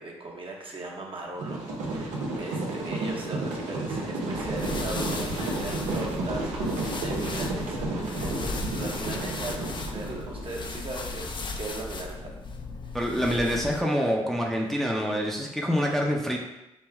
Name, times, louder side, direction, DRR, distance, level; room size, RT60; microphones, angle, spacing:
voice 1, 0.0-12.3 13.3-13.4 14.6-15.2, right 2 dB, 50° right, -1 dB, 1.1 m, -39 dB
sound 1, 1.4-10.5, right 2 dB, 90° right, 0.8 m, -31 dB
sound 2, 4.3-13.8, left 3 dB, 40° left, 0.5 m, -36 dB
voice 2, 12.9-16.4, equal, ahead, -1 dB, 0.6 m, -26 dB
5.3 x 2.2 x 3.4 m, 0.93 s
supercardioid pair, 55°, 12 cm